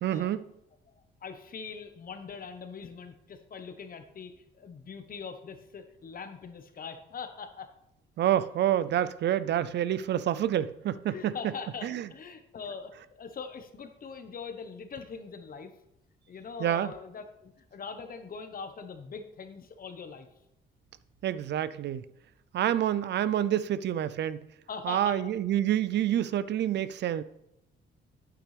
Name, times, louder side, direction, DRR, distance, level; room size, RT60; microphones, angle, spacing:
voice 1, 0.0-0.5 8.2-11.3 11.8-12.1 16.6-16.9 21.2-22.0 22.5-24.4 24.8-27.2, right 11 dB, 60° right, 15 dB, 0.4 m, -28 dB
voice 2, 0.9-7.7 11.1-15.7 16.3-20.3 24.7-25.3, left 5 dB, 45° left, 8 dB, 1.1 m, -42 dB
9.0 x 8.5 x 3.3 m, 0.83 s
cardioid pair, 90°, 20 cm